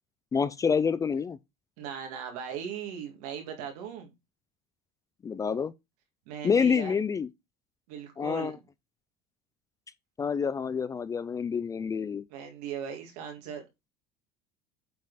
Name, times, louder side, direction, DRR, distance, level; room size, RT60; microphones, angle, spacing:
voice 1, 0.3-1.4 5.2-5.7 6.4-7.3 8.2-8.6 10.2-12.2, left 6 dB, 15° left, 0.3 m, -27 dB
voice 2, 1.8-4.1 6.3-6.9 7.9-8.6 12.3-13.6, right 7 dB, 85° right, 2.3 m, -38 dB
8.4 x 4.1 x 4.0 m
cardioid pair, 140°, 19 cm